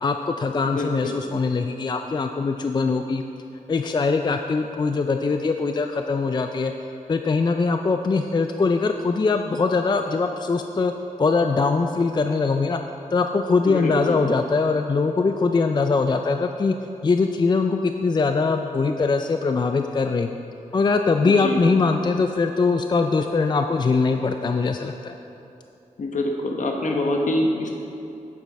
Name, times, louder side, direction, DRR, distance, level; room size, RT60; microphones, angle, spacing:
voice 1, 0.0-3.2 3.7-6.7 7.1-10.9 11.2-12.8 13.1-16.8 17.0-20.4 20.7-25.1, left 4 dB, 35° left, 6 dB, 0.4 m, -22 dB
voice 2, 0.6-1.2 13.6-14.2 21.2-21.6 26.0-27.7, left 1 dB, 65° left, 2 dB, 1.1 m, -25 dB
8.6 x 8.3 x 4.2 m, 2.8 s
wide cardioid pair, 90°, 14 cm